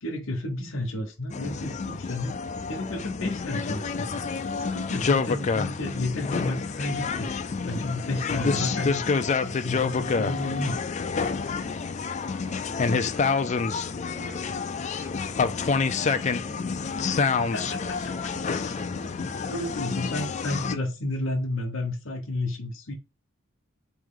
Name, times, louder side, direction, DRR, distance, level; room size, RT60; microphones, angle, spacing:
voice 1, 0.0-2.4 2.7-10.8 17.4-17.6 19.5-22.9, left 1 dB, 70° left, 1.0 m, -32 dB
sound 1, 1.3-20.7, left 5 dB, 35° left, 0.4 m, -28 dB
voice 2, 12.4-14.4 15.0-16.7 17.3-19.8, left 1 dB, 5° right, 1.1 m, -47 dB
4.4 x 3.1 x 3.7 m
head